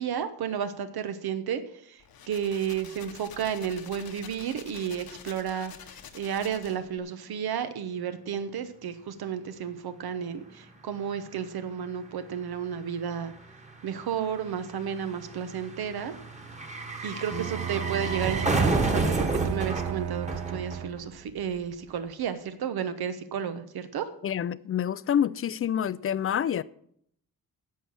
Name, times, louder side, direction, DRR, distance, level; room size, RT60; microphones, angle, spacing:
voice 1, 0.0-5.7 6.1-13.3 13.8-16.1 17.0-24.1, right 8 dB, 85° right, 1.0 m, -32 dB
sound 1, 2.0-7.0, left 8 dB, 75° left, 1.3 m, -47 dB
sound 2, 10.5-10.6 10.8-21.2 21.5-21.6, right 2 dB, 20° right, 1.4 m, -32 dB
Bowed string instrument, 17.3-21.2, right 9 dB, 45° right, 0.4 m, -34 dB
voice 2, 24.2-26.6, left 9 dB, 40° left, 0.4 m, -27 dB
11.0 x 7.5 x 7.1 m
wide cardioid pair, 150°, 36 cm